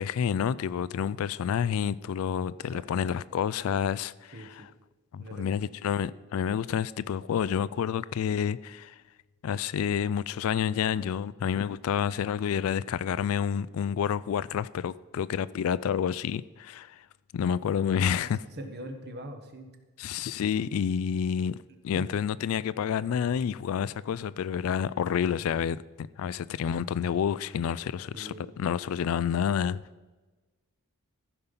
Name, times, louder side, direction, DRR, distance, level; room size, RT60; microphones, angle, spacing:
voice 1, 0.0-4.3 5.1-9.0 9.4-17.0 17.3-18.4 20.0-21.6 21.8-29.8, left 8 dB, 65° left, 0.3 m, -29 dB
voice 2, 4.3-4.7 5.2-5.6 18.0-19.7 21.9-22.1 28.1-28.5, right 1 dB, 50° right, 1.2 m, -42 dB
14.5 x 5.4 x 5.6 m
head